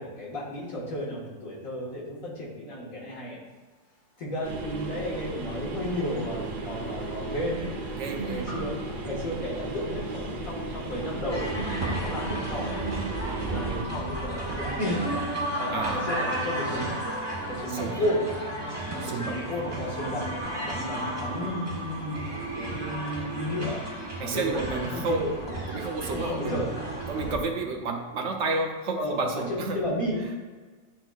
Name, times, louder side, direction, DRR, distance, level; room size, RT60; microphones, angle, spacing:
voice 1, 0.0-3.4 4.2-7.7 8.1-8.7 9.0-12.9 13.5-15.1 15.6-16.9 17.5-18.3 19.0-23.8 24.2-25.3 26.1-26.7 29.0-30.4, equal, 80° left, -6 dB, 2.1 m, -33 dB
sound 1, 4.4-13.8, right 2 dB, 50° right, 0.7 m, -35 dB
sound 2, 4.7-4.8 6.1-17.2 17.4-17.7, right 3 dB, 65° left, 2.4 m, -42 dB
voice 2, 7.9-8.7 15.7-16.1 17.7-18.0 19.0-19.5 24.2-25.2 25.7-26.6 27.1-29.8 30.2-30.4, right 3 dB, 65° right, 2 dB, 1.0 m, -31 dB
sound 3, 11.3-27.4, right 1 dB, 20° right, 1.2 m, -33 dB
10.5 x 3.9 x 2.4 m, 1.4 s
omnidirectional pair, 1.4 m